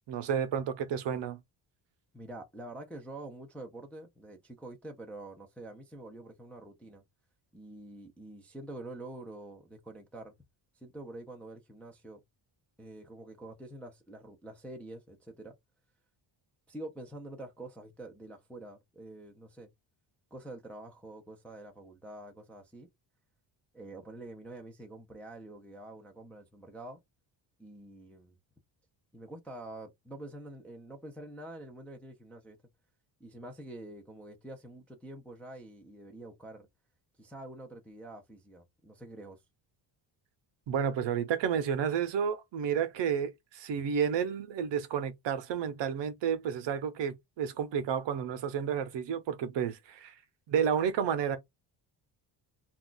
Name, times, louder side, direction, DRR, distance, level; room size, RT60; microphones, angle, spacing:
voice 1, 0.1-1.4 40.7-50.1 50.5-51.4, right 7 dB, 65° right, 0.7 m, -31 dB
voice 2, 2.1-7.0 7.5-10.3 10.8-12.2 12.8-15.5 16.7-19.7 20.3-22.9 23.7-27.0 27.6-28.3 29.1-32.6 33.2-36.7 37.2-39.4, right 1 dB, 5° left, 0.4 m, -46 dB
2.3 x 2.3 x 3.7 m
cardioid pair, 165°, 46 cm